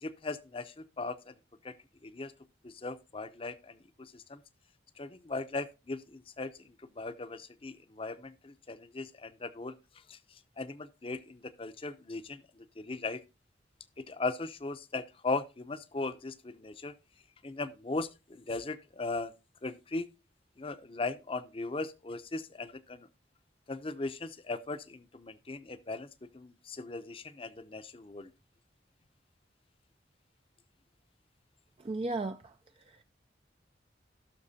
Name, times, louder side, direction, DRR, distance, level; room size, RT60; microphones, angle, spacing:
voice 1, 0.0-1.3 1.6-1.7 2.0-2.3 2.6-4.4 5.0-6.5 7.0-9.7 10.1-10.2 10.6-12.4 12.8-13.2 14.1-16.9 17.4-19.3 19.6-20.1 20.6-23.1 23.7-26.1 26.3-28.3, left 3 dB, 30° left, 0.6 m, -38 dB
voice 2, 31.8-33.0, right 2 dB, 30° right, 0.4 m, -36 dB
18.0 x 6.4 x 2.7 m
head